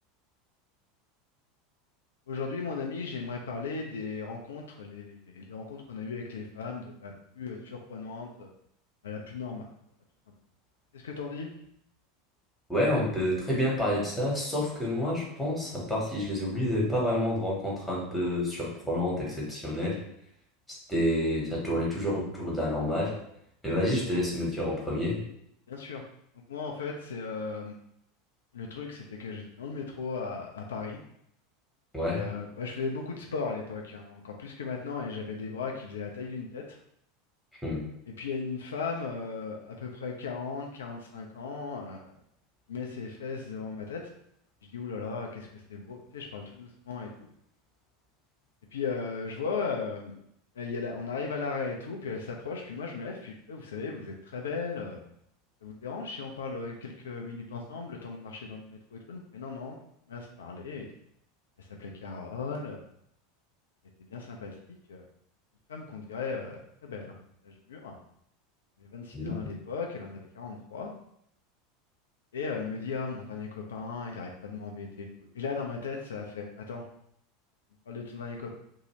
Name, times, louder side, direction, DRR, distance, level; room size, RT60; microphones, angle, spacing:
voice 1, 2.3-8.5 9.0-9.7 10.9-11.5 25.7-26.0 26.5-27.8 28.5-31.0 32.1-36.8 38.2-42.1 42.7-44.1 44.7-47.1 48.7-50.1 50.6-55.0 55.6-59.8 60.1-60.9 61.8-62.8 64.1-65.0 65.7-67.1 67.4-67.9 68.8-70.9 72.3-75.1 75.3-76.8 77.9-78.5, left 4 dB, 70° left, 1 dB, 0.4 m, -37 dB
voice 2, 12.7-20.0 20.7-23.1 23.6-25.2 31.9-32.2 37.6-37.8 69.1-69.5, left 1 dB, 5° left, -4 dB, 1.3 m, -29 dB
2.7 x 2.6 x 3.1 m, 0.72 s
figure-of-eight pair, 80°, 0 cm